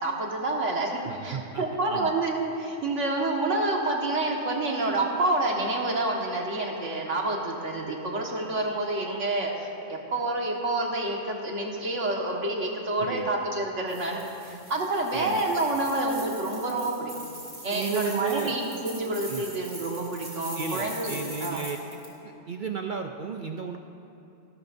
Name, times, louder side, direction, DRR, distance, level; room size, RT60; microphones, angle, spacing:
voice 1, 0.0-14.2 14.5-17.1 17.6-21.6, right 2 dB, 70° right, -1 dB, 2.0 m, -28 dB
voice 2, 1.1-2.1 13.0-13.3 15.1-15.4 17.7-18.6 19.3-19.4 20.5-21.8 22.2-23.8, right 6 dB, 50° right, 4 dB, 0.6 m, -34 dB
sound 1, 13.9-22.1, right 1 dB, 25° right, 2.9 m, -42 dB
28.5 x 13.0 x 2.7 m, 2.8 s
omnidirectional pair, 1.3 m